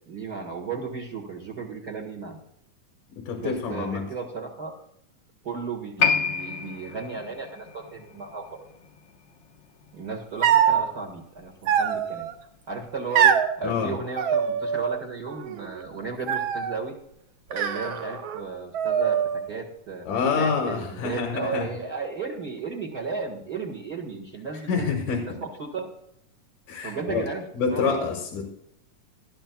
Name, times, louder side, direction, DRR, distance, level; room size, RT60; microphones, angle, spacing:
voice 1, 0.0-2.4 3.4-4.7 5.4-8.7 9.9-12.3 12.7-16.9 17.5-20.1 20.3-25.9 26.8-28.1, right 4 dB, 40° right, 0 dB, 1.7 m, -34 dB
voice 2, 3.3-4.0 13.6-13.9 20.1-21.7 24.7-25.2 26.7-27.3 27.5-28.5, left 5 dB, 90° left, 1 dB, 3.2 m, -27 dB
Piano, 6.0-13.0 13.2-13.3, left 5 dB, 55° left, 1.3 m, -31 dB
sound 1, 10.4-10.9 11.7-12.3 13.1-13.5 14.2-15.0 15.3-15.8 16.3-16.8 17.5-18.4 18.7-19.5, right 8 dB, 85° right, 1.1 m, -23 dB
19.0 x 12.5 x 2.3 m, 0.73 s
omnidirectional pair, 3.5 m